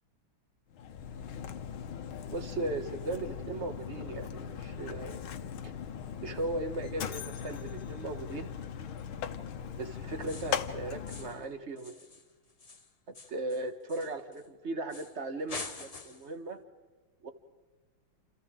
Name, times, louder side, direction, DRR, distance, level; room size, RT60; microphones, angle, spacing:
Mechanisms, 0.7-11.5, left 8 dB, 85° left, 1.8 m, -39 dB
voice 1, 2.3-5.2 6.2-8.5 9.8-12.0 13.1-16.6 17.2-17.3, right 2 dB, 35° right, 7 dB, 1.7 m, -37 dB
sound 1, 10.2-10.7 11.1-11.5 11.8-14.5 14.9-15.2 15.5-16.3, left 4 dB, 25° left, 0.8 m, -45 dB
28.5 x 28.5 x 3.8 m, 1.4 s
omnidirectional pair, 2.2 m